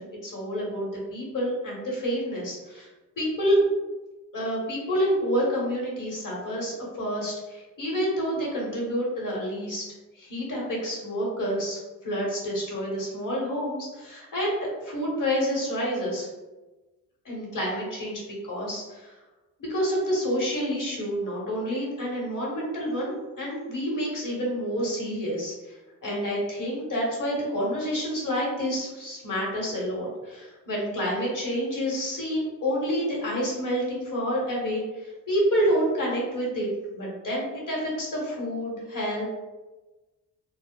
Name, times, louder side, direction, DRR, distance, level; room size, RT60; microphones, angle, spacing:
voice 1, 0.0-2.9 3.2-3.6 4.3-9.8 10.2-11.8 12.0-16.3 17.2-19.1 19.6-36.7 36.9-39.2, equal, 45° left, -3 dB, 1.5 m, -28 dB
4.0 x 2.1 x 2.5 m, 1.2 s
hypercardioid pair, 40°, 43 cm